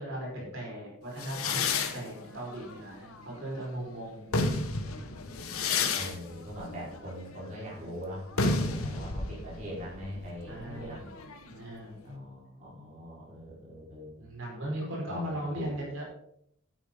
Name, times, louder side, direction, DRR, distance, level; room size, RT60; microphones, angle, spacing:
voice 1, 0.0-1.6 1.9-4.4 6.0-6.4 10.5-11.1 11.5-12.0 14.2-16.0, right 1 dB, 65° right, -3 dB, 5.1 m, -38 dB
sound 1, 1.2-3.7 4.1-11.6, left 3 dB, 85° left, 1.3 m, -32 dB
voice 2, 5.9-11.0 12.0-14.1 15.1-15.7, equal, 35° right, -7 dB, 4.6 m, -42 dB
12.0 x 9.6 x 3.9 m, 0.69 s
head